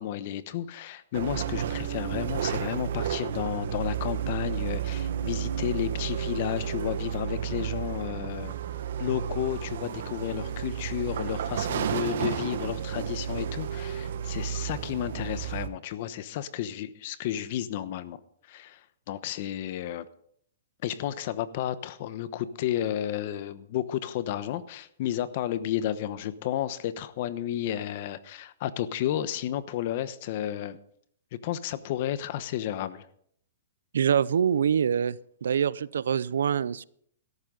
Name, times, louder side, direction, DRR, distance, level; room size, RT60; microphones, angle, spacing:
voice 1, 0.0-8.6 9.0-18.2 18.5-18.8 19.1-20.1 20.8-30.8 31.3-33.0, left 11 dB, 50° left, 14 dB, 1.0 m, -32 dB
sound 1, 1.1-15.7, right 9 dB, 70° right, 1.4 m, -32 dB
voice 2, 33.9-36.8, right 8 dB, 85° right, 21 dB, 0.5 m, -25 dB
16.5 x 13.5 x 3.9 m, 0.66 s
hypercardioid pair, 150°, 0 cm